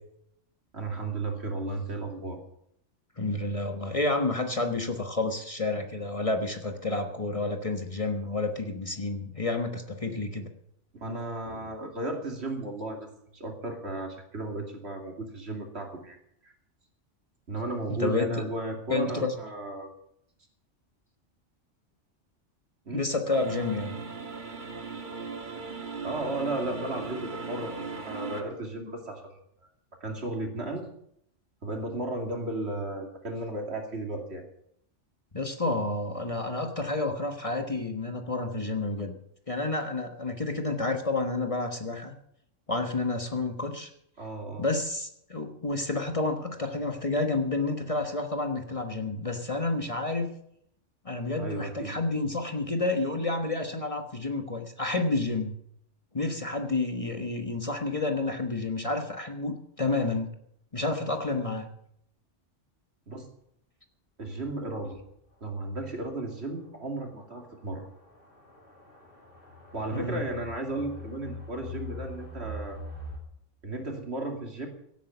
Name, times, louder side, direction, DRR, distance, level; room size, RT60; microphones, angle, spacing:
voice 1, 0.7-2.4 11.0-16.2 16.4-16.5 17.5-19.9 22.9-23.1 26.0-29.2 30.0-30.9 31.6-34.4 44.2-44.7 51.4-51.9 63.1-63.3 64.2-65.0 65.4-67.9 69.7-72.8 73.6-74.7, right 2 dB, 60° right, 2 dB, 2.8 m, -34 dB
voice 2, 3.2-10.5 18.0-18.4 18.9-19.3 22.9-24.0 35.3-39.1 39.5-42.1 42.7-43.9 44.6-50.3 51.0-55.5 56.1-60.3 60.7-61.7 69.9-70.2, left 2 dB, 30° left, 5 dB, 1.3 m, -30 dB
sound 1, 23.3-28.4, right 4 dB, 40° right, 1.6 m, -38 dB
sound 2, 65.0-65.1 65.4-65.5 66.0-66.1 67.0-73.2, left 2 dB, 50° left, 2.8 m, -43 dB
16.5 x 9.1 x 7.0 m, 0.73 s
omnidirectional pair, 1.3 m